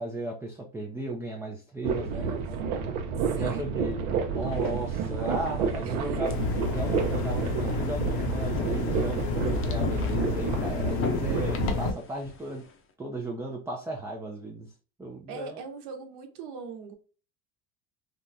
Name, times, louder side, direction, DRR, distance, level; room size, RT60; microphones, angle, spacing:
voice 1, 0.0-2.4 3.3-4.0 4.3-6.3 6.7-12.6 13.0-14.7 15.0-15.6, right 2 dB, 5° right, 0.3 m, -35 dB
voice 2, 1.8-2.4 3.2-3.7 5.8-6.5 15.3-17.0, right 5 dB, 65° right, 1.0 m, -41 dB
sound 1, 1.8-11.7, right 6 dB, 90° right, 0.7 m, -30 dB
sound 2, 4.5-12.7, left 4 dB, 30° left, 0.6 m, -39 dB
sound 3, 6.2-11.9, left 4 dB, 70° left, 0.8 m, -30 dB
3.6 x 2.1 x 2.6 m
supercardioid pair, 100°, 42 cm